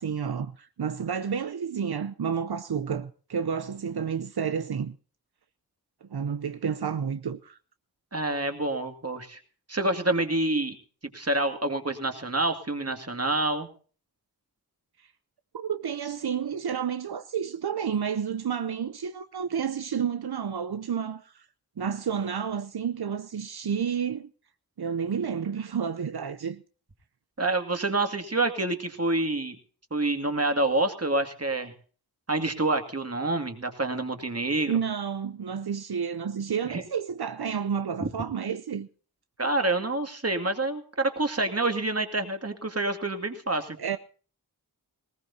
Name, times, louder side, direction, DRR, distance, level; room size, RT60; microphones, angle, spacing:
voice 1, 0.0-5.0 6.0-7.6 15.5-21.5 21.8-24.3 24.8-26.6 34.7-38.9 43.5-44.0, right 7 dB, 80° right, 0.7 m, -30 dB
voice 2, 8.1-9.4 9.7-10.8 11.1-13.7 27.4-29.6 29.9-31.7 32.3-34.7 36.6-36.8 38.0-38.1 39.4-44.0, right 2 dB, 40° right, 2.3 m, -27 dB
19.5 x 18.5 x 2.8 m
wide cardioid pair, 55°, 37 cm